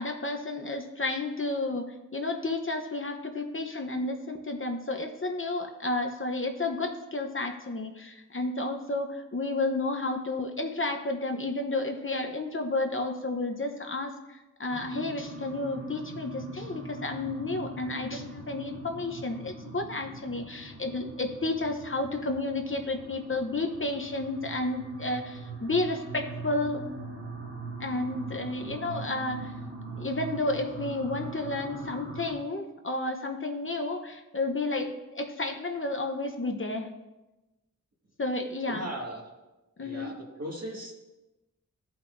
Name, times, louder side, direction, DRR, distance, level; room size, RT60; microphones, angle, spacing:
voice 1, 0.0-26.8 27.8-29.5 29.9-36.9 38.2-38.9 39.8-40.1, left 2 dB, 35° left, 4 dB, 0.8 m, -31 dB
sound 1, 14.7-32.3, right 2 dB, 30° right, 2.2 m, -42 dB
voice 2, 38.7-39.3 39.8-40.9, right 1 dB, 50° right, -1 dB, 1.9 m, -38 dB
14.0 x 5.9 x 2.6 m, 1.0 s
wide cardioid pair, 75°, 33 cm